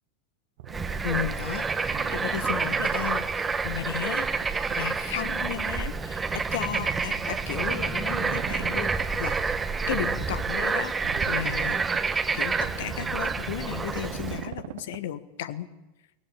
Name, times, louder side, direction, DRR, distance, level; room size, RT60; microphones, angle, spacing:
sound 1, 0.6-1.1 1.9-3.2 4.2-4.8 5.2-5.6 6.8-7.5 8.1-9.2 9.8-10.4 11.0-12.1 12.6-13.5 13.9-15.0, right 11 dB, 55° right, 1.5 m, -40 dB
Bird / Frog, 0.7-14.5, right 4 dB, 15° right, 1.5 m, -28 dB
voice 1, 1.0-1.7 2.1-3.2 3.6-4.3 4.7-8.9 9.2-9.6 9.9-10.9 11.3-11.8 12.3-15.7, left 11 dB, 60° left, 12 dB, 1.5 m, -34 dB
22.0 x 20.0 x 8.8 m, 0.99 s
figure-of-eight pair, 85°, 0 cm